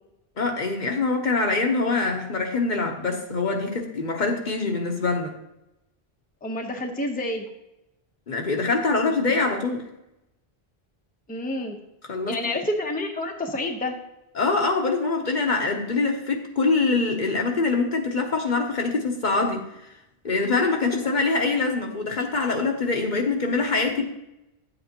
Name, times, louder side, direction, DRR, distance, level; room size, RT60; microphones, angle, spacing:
voice 1, 0.4-5.4 8.3-9.8 12.1-12.4 14.4-19.6 20.2-24.0, left 3 dB, 50° left, 2 dB, 1.0 m, -24 dB
voice 2, 6.4-7.4 11.3-11.8 12.3-13.9 20.6-20.7, left 1 dB, 10° left, 2 dB, 0.7 m, -28 dB
9.9 x 7.9 x 2.9 m, 0.89 s
omnidirectional pair, 1.0 m